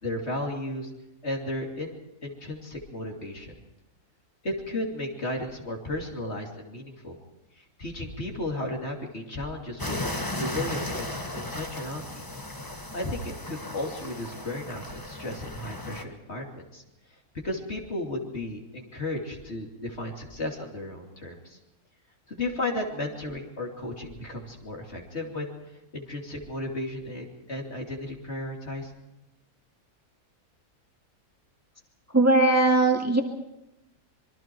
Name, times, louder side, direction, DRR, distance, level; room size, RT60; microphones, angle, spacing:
voice 1, 0.0-0.9 1.2-3.5 4.4-7.2 7.8-10.0 10.4-12.2 12.9-16.8 17.4-21.6 22.3-25.5 25.9-28.9, left 1 dB, 45° left, 1 dB, 3.0 m, -34 dB
sound 1, 9.8-16.0, left 1 dB, 15° left, 1.4 m, -35 dB
voice 2, 32.1-33.2, right 2 dB, 10° right, 2 dB, 2.0 m, -19 dB
26.0 x 22.5 x 4.6 m, 0.93 s
omnidirectional pair, 1.6 m